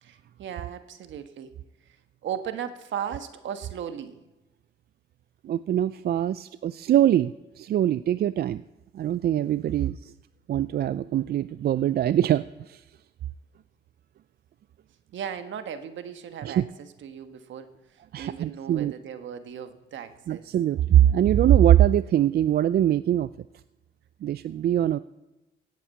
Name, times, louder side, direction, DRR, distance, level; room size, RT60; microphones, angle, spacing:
voice 1, 0.0-1.5 2.2-4.2 15.1-16.6 17.0-17.7 18.2-20.4, right 8 dB, 70° right, 9 dB, 1.3 m, -36 dB
voice 2, 5.4-8.6 8.9-10.1 10.5-12.8 16.4-16.7 18.1-18.9 20.3-23.3 24.2-25.0, right 11 dB, 50° right, 16 dB, 0.4 m, -22 dB
16.5 x 8.6 x 8.3 m, 1.0 s
cardioid pair, 90°, 20 cm